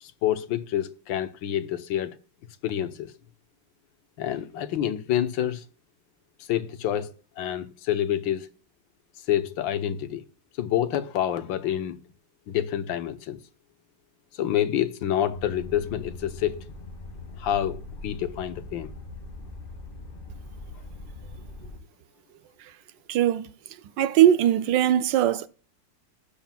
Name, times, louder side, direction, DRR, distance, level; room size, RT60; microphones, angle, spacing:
voice 1, 0.0-2.2 2.6-3.1 4.2-5.6 6.5-7.1 7.4-8.5 9.3-10.2 10.6-12.0 12.5-13.4 14.3-16.7 17.4-18.9, left 11 dB, 90° left, 1.6 m, -27 dB
sound 1, 15.3-21.8, left 2 dB, 35° left, 1.1 m, -41 dB
voice 2, 23.1-23.5 24.0-25.5, right 11 dB, 75° right, 1.3 m, -20 dB
17.5 x 7.4 x 2.2 m
omnidirectional pair, 2.0 m